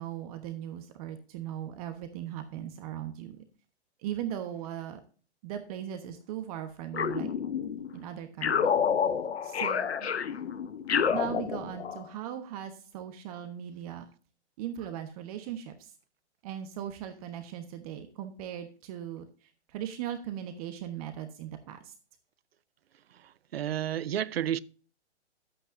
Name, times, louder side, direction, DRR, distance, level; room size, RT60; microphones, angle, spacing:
voice 1, 0.0-3.4 4.0-5.0 5.4-7.3 7.9-8.7 9.4-10.1 11.1-14.1 14.6-15.9 16.4-21.9, right 10 dB, 35° right, 1.1 m, -38 dB
sound 1, 6.9-7.9 8.4-12.1, left 7 dB, 70° left, 1.0 m, -29 dB
voice 2, 23.5-24.6, right 11 dB, 60° right, 0.6 m, -30 dB
12.0 x 8.6 x 2.6 m
figure-of-eight pair, 125°, 34 cm